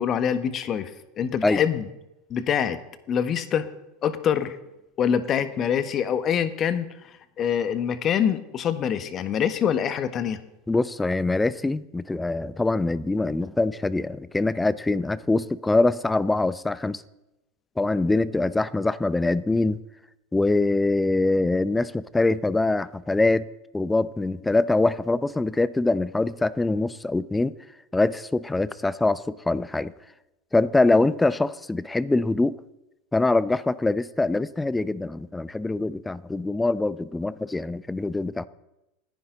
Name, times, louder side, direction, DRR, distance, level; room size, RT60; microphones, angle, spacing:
voice 1, 0.0-1.9 2.3-2.8 3.1-3.7 4.0-4.6 5.0-10.4, left 8 dB, 40° left, 12 dB, 1.4 m, -25 dB
voice 2, 10.7-17.0 17.8-19.8 20.3-23.5 23.7-27.5 27.9-29.9 30.5-32.6 33.1-38.5, left 2 dB, 10° left, 17 dB, 0.7 m, -23 dB
28.0 x 10.5 x 4.0 m, 0.94 s
hypercardioid pair, 85°, 0 cm